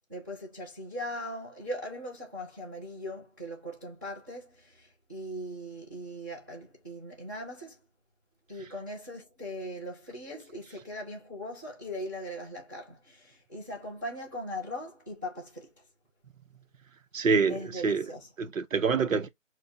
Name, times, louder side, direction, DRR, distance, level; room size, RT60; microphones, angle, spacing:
voice 1, 0.1-7.8 8.5-15.7 17.5-18.3, equal, 15° right, 0.7 m, -40 dB
voice 2, 17.1-18.0 18.4-19.3, right 5 dB, 85° right, 1.0 m, -26 dB
6.4 x 2.4 x 2.7 m
hypercardioid pair, 170°, 39 cm